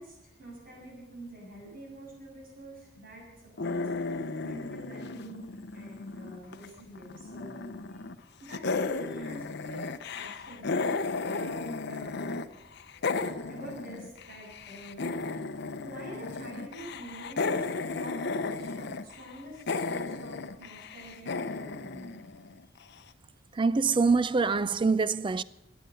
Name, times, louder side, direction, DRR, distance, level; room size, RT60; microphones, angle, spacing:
voice 1, 0.0-3.8 4.4-7.6 7.9-8.0 8.4-12.5 12.9-15.1 15.8-22.2, right 1 dB, 45° right, 7.3 m, -46 dB
sound 1, 3.6-6.7 7.0-8.2 8.5-12.5 12.7-22.8, left 3 dB, 60° left, 0.7 m, -34 dB
voice 2, 23.6-25.4, right 4 dB, 25° right, 0.4 m, -25 dB
17.0 x 9.5 x 6.9 m
head